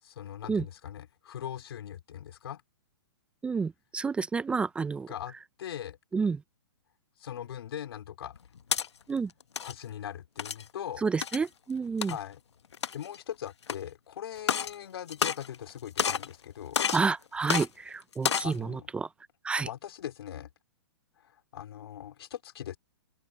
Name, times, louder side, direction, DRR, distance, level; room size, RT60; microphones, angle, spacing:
voice 1, 0.0-2.6 5.1-6.0 7.2-8.3 9.6-11.1 12.0-12.4 12.9-16.8 18.4-18.9 19.6-20.5 21.2-22.8, left 10 dB, 65° left, 4.6 m, -40 dB
voice 2, 3.4-5.1 6.1-6.4 9.1-9.3 11.0-12.2 16.9-19.1 19.4-19.7, right 5 dB, 10° right, 0.4 m, -29 dB
sound 1, 8.3-8.9 9.4-9.7 10.4-10.7 11.2-11.5 12.0-12.1 12.7-13.2 13.7-13.8 14.4-14.8 15.1-15.7 16.0-16.3 16.7-17.1 17.5-17.7 18.1-18.5, left 7 dB, 90° left, 1.2 m, -29 dB
open air
hypercardioid pair, 140°, 14 cm